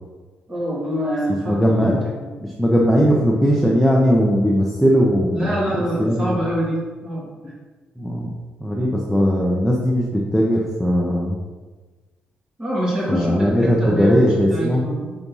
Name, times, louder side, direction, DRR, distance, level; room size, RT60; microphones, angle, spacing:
voice 1, 0.5-1.9 2.2-2.3 5.3-7.5 12.6-15.2, equal, 20° right, -6 dB, 2.3 m, -25 dB
voice 2, 1.5-2.0 2.4-5.6 6.0-6.4 8.0-8.3 8.6-11.4 13.1-14.8, equal, ahead, -4 dB, 0.7 m, -18 dB
6.1 x 4.2 x 5.4 m, 1.3 s
wide cardioid pair, 180°, 4 cm